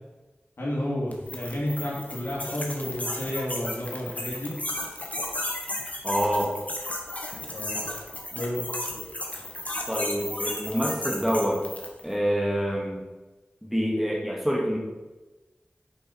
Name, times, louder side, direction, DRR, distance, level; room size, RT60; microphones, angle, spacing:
voice 1, 0.6-4.5 7.5-7.8 8.3-8.6, equal, 75° left, -5 dB, 3.0 m, -31 dB
sound 1, 1.1-12.0, left 1 dB, 35° left, 1.6 m, -34 dB
voice 2, 6.0-6.5 9.9-11.6 12.0-13.0 13.6-14.8, equal, 5° right, -1 dB, 2.1 m, -26 dB
8.8 x 5.4 x 4.6 m, 1.2 s
wide cardioid pair, 50°, 4 cm